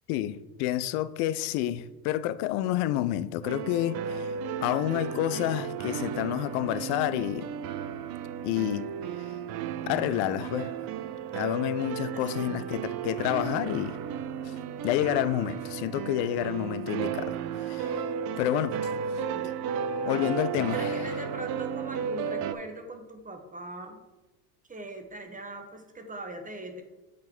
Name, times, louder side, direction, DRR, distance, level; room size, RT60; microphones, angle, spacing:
voice 1, 0.1-4.3 4.6-7.5 8.4-8.9 9.9-10.8 11.3-14.0 14.4-14.6 14.8-18.0 18.4-18.9 20.1-21.1, left 13 dB, 60° left, 0.6 m, -29 dB
sound 1, 3.4-22.5, right 7 dB, 50° right, 0.6 m, -34 dB
voice 2, 12.1-12.8 19.1-19.5 20.7-24.0 24.7-26.8, right 2 dB, 15° right, 1.2 m, -41 dB
8.3 x 3.8 x 4.4 m
hypercardioid pair, 80°, 48 cm